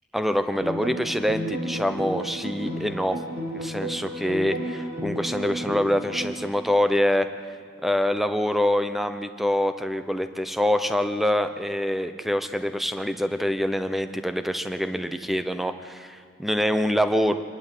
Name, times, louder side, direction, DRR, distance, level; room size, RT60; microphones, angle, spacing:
voice 1, 0.1-3.2 3.5-7.3 7.8-17.4, left 1 dB, ahead, 9 dB, 0.8 m, -25 dB
sound 1, 0.6-6.3, equal, 60° right, 2.8 m, -32 dB
25.5 x 12.0 x 9.2 m, 2.2 s
head